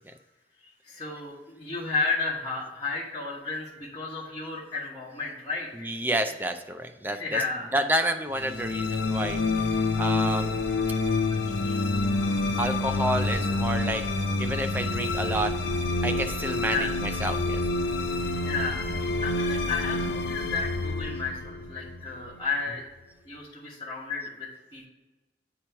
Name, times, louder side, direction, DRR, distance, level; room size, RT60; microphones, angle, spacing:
voice 1, 0.8-5.9 7.1-7.7 11.3-11.9 16.6-16.9 18.4-18.9 19.2-22.8 23.2-24.9, left 4 dB, 20° left, -9 dB, 1.2 m, -33 dB
voice 2, 5.7-7.4 7.7-9.4 10.0-10.6 12.6-14.0 14.4-15.5 16.0-17.6, right 1 dB, 10° right, 6 dB, 0.4 m, -29 dB
sound 1, 8.4-22.7, left 2 dB, 70° left, 0.6 m, -28 dB
8.5 x 3.0 x 4.5 m, 1.1 s
head